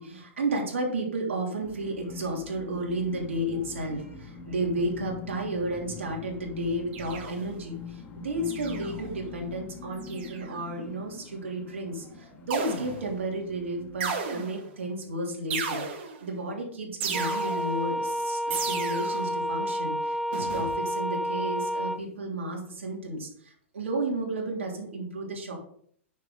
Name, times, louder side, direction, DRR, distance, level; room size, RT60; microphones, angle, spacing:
voice 1, 0.0-25.5, right 1 dB, 75° right, -1 dB, 3.2 m, -32 dB
sound 1, 1.6-14.0, left 5 dB, 25° left, 1.8 m, -44 dB
sound 2, 6.9-7.6 8.4-9.1 10.0-10.5 12.5-13.2 14.0-14.7 15.5-16.3 17.0-17.8 18.5-19.3 20.3-20.8, right 5 dB, 55° right, 2.3 m, -34 dB
sound 3, 17.1-22.0, equal, ahead, 0.4 m, -30 dB
9.6 x 6.9 x 4.0 m, 0.62 s
hypercardioid pair, 110°, 7 cm